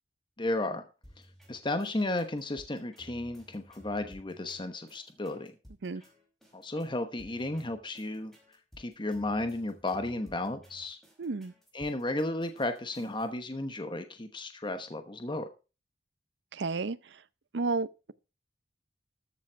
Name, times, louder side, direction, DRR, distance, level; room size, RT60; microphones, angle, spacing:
voice 1, 0.4-0.8 1.5-5.5 6.5-8.3 8.8-11.0 11.7-15.5, left 2 dB, 25° left, 1.1 m, -33 dB
sound 1, 1.0-13.3, equal, ahead, 5.0 m, -56 dB
voice 2, 11.2-11.5 16.5-17.0 17.5-18.1, right 3 dB, 75° right, 0.6 m, -31 dB
13.5 x 7.4 x 4.6 m
head